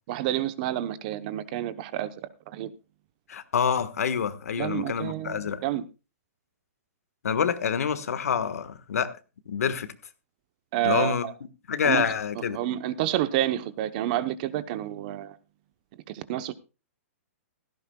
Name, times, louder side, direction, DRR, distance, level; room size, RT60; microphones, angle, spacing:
voice 1, 0.1-2.1 2.5-2.7 4.6-5.8 10.7-11.3 11.8-12.1 12.5-15.3 16.1-16.5, right 13 dB, 35° right, 0.8 m, -29 dB
voice 2, 3.3-5.6 7.2-9.1 9.5-9.9 10.8-11.2 11.7-12.6, left 7 dB, 80° left, 1.4 m, -27 dB
16.5 x 14.0 x 2.3 m
hypercardioid pair, 160°, 8 cm